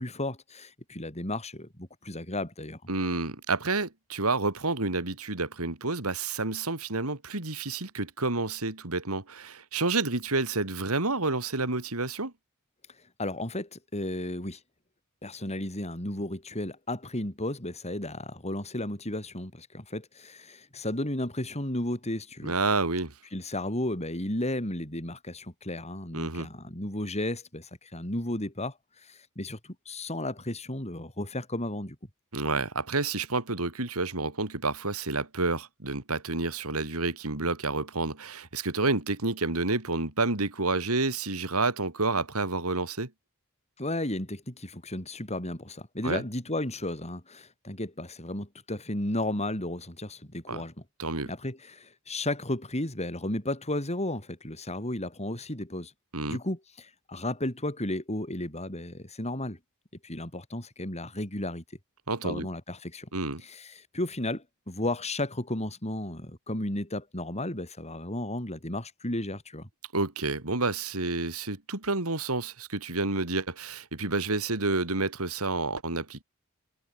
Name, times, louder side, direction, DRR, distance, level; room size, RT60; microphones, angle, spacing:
voice 1, 0.0-2.8 13.2-14.6 15.2-22.5 23.3-32.0 43.8-50.7 51.3-55.9 56.3-59.6 60.0-61.6 62.2-63.1 63.4-69.7, left 1 dB, 30° left, 7.3 m, -34 dB
voice 2, 2.9-12.3 22.4-23.1 26.1-26.5 32.3-43.1 46.0-46.2 50.5-50.6 51.0-51.3 56.1-56.4 62.1-62.5 63.1-63.4 69.9-76.2, right 3 dB, 80° right, 3.1 m, -29 dB
head